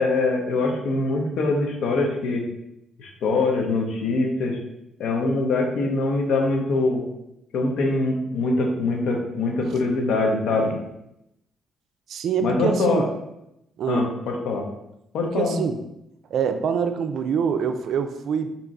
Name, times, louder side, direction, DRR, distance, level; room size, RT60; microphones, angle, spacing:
voice 1, 0.0-2.4 3.0-4.6 5.0-7.0 7.5-10.7 12.4-13.0 13.9-14.6 15.1-15.6, left 3 dB, 75° left, 1 dB, 0.9 m, -23 dB
voice 2, 12.1-13.1 13.8-14.1 15.2-15.8 16.3-18.5, right 7 dB, 70° right, 8 dB, 0.4 m, -25 dB
3.7 x 2.9 x 4.0 m, 0.84 s
cardioid pair, 90°, 0 cm